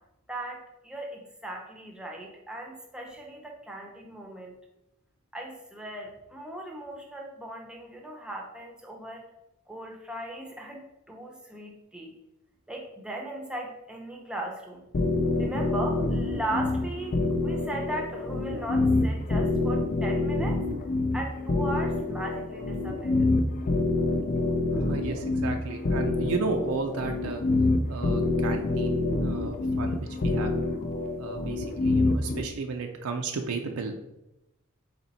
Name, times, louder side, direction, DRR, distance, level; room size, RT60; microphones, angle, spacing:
voice 1, 0.3-4.5 5.3-9.2 9.7-12.1 12.7-14.9 15.4-17.2 17.4-23.5, right 1 dB, 5° right, 0 dB, 0.6 m, -38 dB
sound 1, 14.9-32.4, left 2 dB, 40° left, 0.4 m, -27 dB
voice 2, 24.7-27.4 27.9-30.5 31.2-33.9, right 4 dB, 75° right, 4 dB, 0.5 m, -34 dB
4.3 x 3.0 x 4.1 m, 0.90 s
head